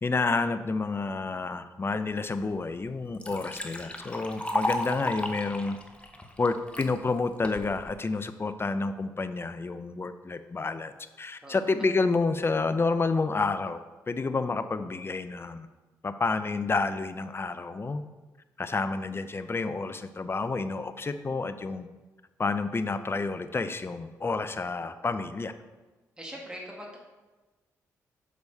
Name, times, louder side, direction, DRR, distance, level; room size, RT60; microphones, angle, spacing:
voice 1, 0.0-5.8 6.4-13.8 14.1-15.7 16.0-18.0 18.6-21.9 22.4-25.5, left 3 dB, 30° left, 11 dB, 0.6 m, -29 dB
Liquid, 2.4-2.5 2.9-6.9 7.4-7.9, left 1 dB, 15° left, 1.0 m, -34 dB
voice 2, 26.2-27.0, equal, 10° right, -2 dB, 2.3 m, -42 dB
6.2 x 5.1 x 5.4 m, 1.2 s
hypercardioid pair, 45°, 8 cm